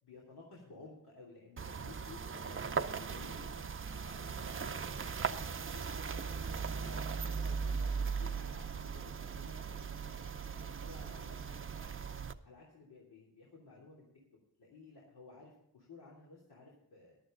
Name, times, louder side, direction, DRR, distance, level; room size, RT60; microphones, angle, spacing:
voice 1, 0.0-3.7 4.0-10.3 10.5-12.0 12.4-14.1 14.6-17.2, left 3 dB, 75° left, -4 dB, 3.2 m, -55 dB
sound 1, 1.6-12.3, right 5 dB, 35° right, 0.6 m, -38 dB
14.5 x 11.5 x 3.8 m, 0.78 s
wide cardioid pair, 125°, 39 cm